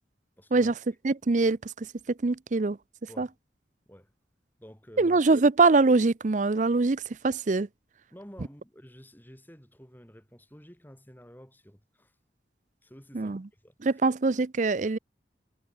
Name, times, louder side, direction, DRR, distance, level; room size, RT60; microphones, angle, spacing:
voice 1, 0.4-0.7 3.1-3.4 3.9-4.1 4.6-5.2 8.1-12.1 12.8-14.0, equal, 10° left, 6.1 m, -51 dB
voice 2, 1.0-1.7 2.2-2.8 3.2-3.3 5.0-7.7 13.1-13.4 13.8-15.0, right 3 dB, 40° right, 0.5 m, -23 dB
head